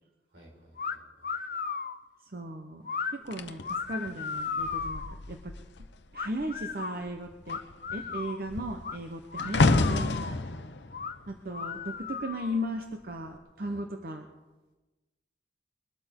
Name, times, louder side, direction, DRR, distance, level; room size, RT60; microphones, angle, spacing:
voice 1, 0.3-1.0 7.9-8.2 10.0-10.8 13.6-13.9, right 1 dB, 85° right, -2 dB, 5.3 m, -53 dB
sound 1, 0.8-1.0 1.2-2.0 2.8-3.1 3.6-5.2 6.1-7.0 7.5-8.4 8.8-9.0 9.3-10.4 10.9-11.1 11.5-12.6, left 5 dB, 50° left, 0.7 m, -35 dB
voice 2, 2.3-2.8 3.1-5.0 5.3-5.5 6.1-7.6 7.9-10.2 11.3-14.2, equal, 55° right, 4 dB, 0.9 m, -36 dB
sound 2, 3.3-6.0 6.3-6.7 7.0-12.3 13.1-13.3, left 2 dB, 85° left, 0.7 m, -30 dB
22.5 x 12.5 x 3.7 m, 1.2 s
head